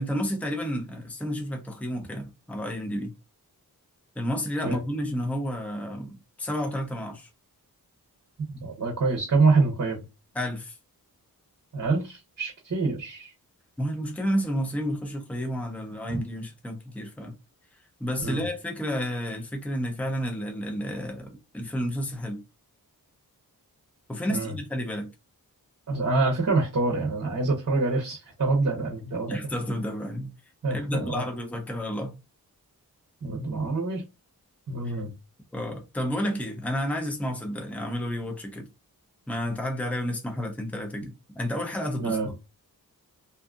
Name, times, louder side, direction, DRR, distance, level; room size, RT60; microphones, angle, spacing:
voice 1, 0.0-3.1 4.2-7.3 10.3-10.8 13.8-17.3 18.0-21.3 21.5-22.4 24.1-25.1 29.3-30.3 30.7-32.2 34.8-35.0 35.5-38.7 39.3-42.3, equal, 5° left, 0.5 m, -31 dB
voice 2, 8.6-10.0 11.7-13.3 18.2-18.4 24.3-24.5 25.9-29.4 30.6-31.2 33.2-34.0 34.7-35.1 42.0-42.3, right 3 dB, 45° right, 0.8 m, -26 dB
2.6 x 2.4 x 2.4 m
wide cardioid pair, 105°, 37 cm